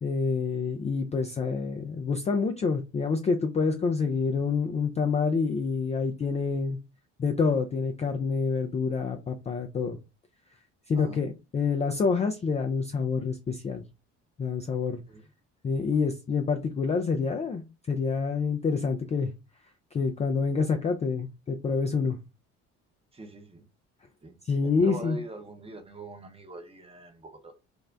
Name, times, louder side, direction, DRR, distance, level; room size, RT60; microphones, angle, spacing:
voice 1, 0.0-6.8 7.2-10.0 10.9-13.8 14.4-15.0 15.6-19.3 19.9-22.2 24.4-25.2, left 5 dB, 20° left, 0.3 m, -27 dB
voice 2, 23.1-23.6 24.2-24.3 24.6-27.5, right 1 dB, 15° right, 0.7 m, -43 dB
2.5 x 2.1 x 3.3 m
hypercardioid pair, 55°, 36 cm